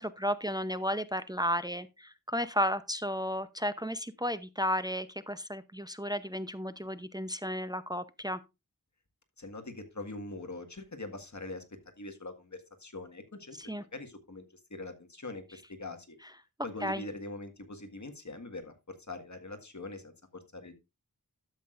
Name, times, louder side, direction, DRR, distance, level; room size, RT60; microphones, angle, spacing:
voice 1, 0.0-8.4 13.6-13.8 16.8-17.0, equal, 10° right, 0.7 m, -33 dB
voice 2, 9.4-11.6 12.0-14.4 14.7-16.2 16.6-20.1 20.5-20.7, left 2 dB, 55° left, 1.7 m, -43 dB
12.0 x 7.6 x 2.5 m
wide cardioid pair, 50°, 34 cm